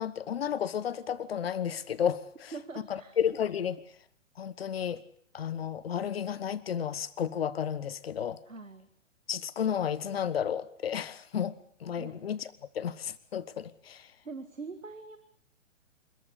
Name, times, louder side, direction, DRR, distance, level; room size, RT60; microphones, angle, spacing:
voice 1, 0.0-2.5 2.9-3.8 4.4-5.0 5.3-8.4 9.3-11.6 11.8-12.4 12.7-14.0, left 8 dB, 50° left, 1.4 m, -32 dB
voice 2, 2.5-3.1 8.4-8.9 12.0-12.1 14.2-15.2, right 4 dB, 80° right, 1.8 m, -43 dB
27.0 x 14.5 x 8.3 m
figure-of-eight pair, 125°, 38 cm